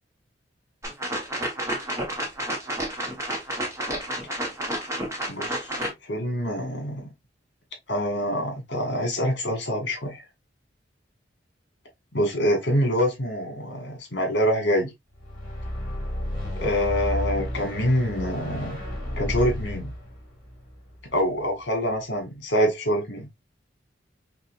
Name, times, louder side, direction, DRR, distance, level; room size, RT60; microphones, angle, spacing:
sound 1, 0.8-5.9, right 1 dB, 15° right, 1.2 m, -30 dB
voice 1, 6.1-7.1 7.9-10.2 12.1-14.9 16.6-18.8 19.2-19.9 21.1-23.3, equal, 70° left, 1.8 m, -25 dB
sound 2, 15.1-21.5, equal, 50° left, 2.6 m, -32 dB
5.5 x 2.6 x 2.5 m
head